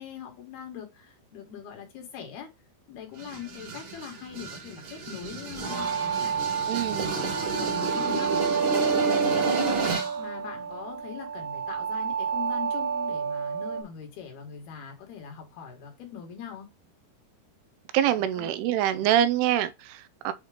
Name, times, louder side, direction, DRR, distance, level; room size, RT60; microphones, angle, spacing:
voice 1, 0.0-2.5 2.9-8.3 9.1-9.5 10.1-16.7 18.4-19.1, left 8 dB, 75° left, 3.5 m, -42 dB
sound 1, 3.2-10.2, right 3 dB, 50° right, 1.6 m, -31 dB
sound 2, 5.7-13.8, right 7 dB, 70° right, 2.9 m, -29 dB
voice 2, 6.7-7.2 17.9-20.3, right 11 dB, 90° right, 2.6 m, -25 dB
8.0 x 3.0 x 4.9 m
omnidirectional pair, 4.6 m